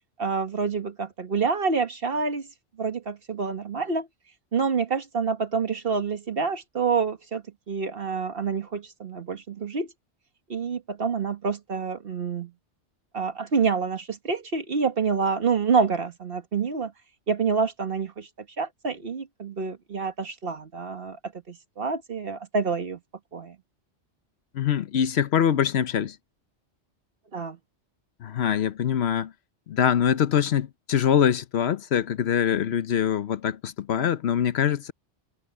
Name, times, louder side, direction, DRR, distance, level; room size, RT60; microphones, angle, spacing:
voice 1, 0.2-2.5 2.8-4.1 4.5-9.9 10.5-12.5 13.1-16.9 17.3-18.3 18.6-21.2 21.5-23.0 23.3-23.5 27.3-27.6, right 5 dB, 55° right, 1.6 m, -27 dB
voice 2, 24.5-26.2 28.2-29.3 29.7-34.9, left 9 dB, 65° left, 1.0 m, -24 dB
omnidirectional pair, 1.2 m